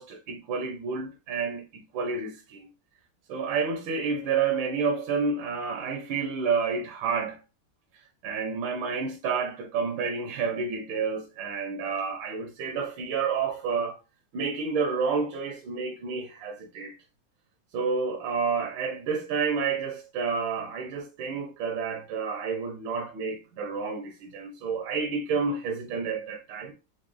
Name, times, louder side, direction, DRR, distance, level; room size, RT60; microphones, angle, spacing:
voice 1, 0.0-2.7 3.3-7.4 8.2-14.0 14.3-16.9 17.7-26.7, right 5 dB, 75° right, 1.4 m, -30 dB
4.6 x 2.2 x 3.1 m
omnidirectional pair, 2.2 m